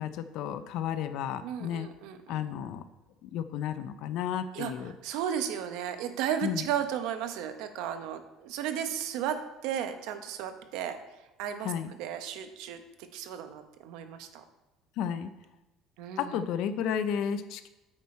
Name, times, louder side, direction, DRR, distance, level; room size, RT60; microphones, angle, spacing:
voice 1, 0.0-1.9 2.3-2.8 3.2-4.9 6.4-6.6 11.6-11.9 15.0-15.3 16.2-17.7, left 8 dB, 65° left, 12 dB, 0.6 m, -32 dB
voice 2, 1.4-2.4 4.5-4.7 5.0-11.0 11.4-11.7 12.0-12.8 13.1-14.4 16.0-16.4, right 9 dB, 75° right, 8 dB, 0.9 m, -34 dB
8.9 x 6.1 x 4.3 m, 1.0 s
cardioid pair, 140°, 0 cm